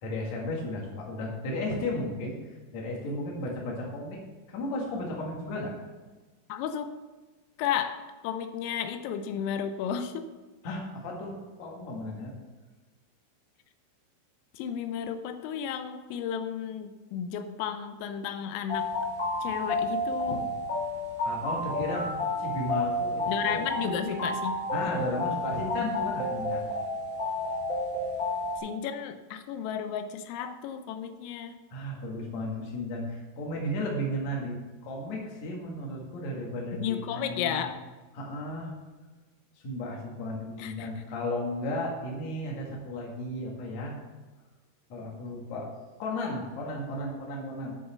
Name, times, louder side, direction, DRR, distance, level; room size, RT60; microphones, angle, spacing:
voice 1, 0.0-4.2 4.5-5.7 10.6-12.3 21.2-22.1 22.4-24.2 24.7-26.7 31.7-37.6 38.1-38.7 39.6-43.9 44.9-45.7 46.0-47.7, left 1 dB, 50° left, -2 dB, 2.2 m, -34 dB
voice 2, 6.5-6.9 7.6-10.3 14.5-18.9 19.4-20.5 23.3-24.5 28.6-31.6 36.8-37.8 40.6-40.9, left 8 dB, 85° left, 8 dB, 3.4 m, -33 dB
sound 1, 18.7-28.6, left 2 dB, 20° left, 2.0 m, -31 dB
10.0 x 5.5 x 6.7 m, 1.2 s
omnidirectional pair, 5.9 m